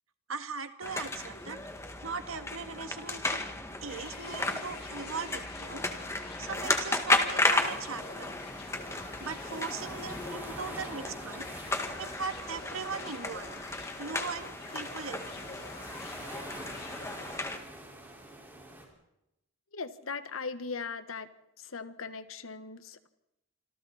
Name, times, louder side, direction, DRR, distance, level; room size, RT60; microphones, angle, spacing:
voice 1, 0.3-1.6 2.0-3.4 3.8-5.8 6.4-8.4 9.2-11.5 12.0-13.6 14.0-15.6, right 5 dB, 90° right, 9 dB, 1.8 m, -39 dB
sound 1, 0.8-17.6, left 2 dB, 15° left, 2.0 m, -34 dB
sound 2, 1.1-18.9, right 1 dB, 10° right, 4.8 m, -49 dB
sound 3, 3.9-17.7, left 4 dB, 50° left, 4.4 m, -49 dB
voice 2, 19.7-21.3 21.6-23.1, left 4 dB, 85° left, 11 dB, 1.5 m, -39 dB
27.0 x 26.0 x 4.3 m, 0.87 s
head